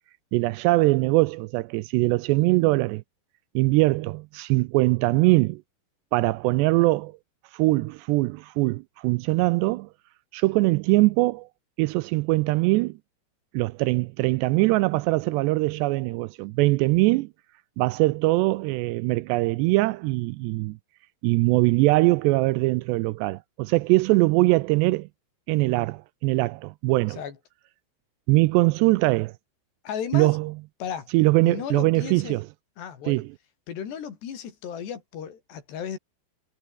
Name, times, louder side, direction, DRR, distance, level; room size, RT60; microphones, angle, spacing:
voice 1, 0.3-3.0 3.6-5.6 6.1-7.1 7.5-9.9 10.3-11.5 11.8-13.0 13.5-17.3 17.8-20.8 21.2-25.1 25.5-27.2 28.3-29.3 30.1-30.5 31.1-32.5 33.1-33.3, right 21 dB, 80° right, 2.6 m, -22 dB
voice 2, 29.8-30.3 30.8-31.1 31.4-32.4 32.8-33.2 33.7-36.0, left 8 dB, 70° left, 5.4 m, -34 dB
omnidirectional pair, 5.2 m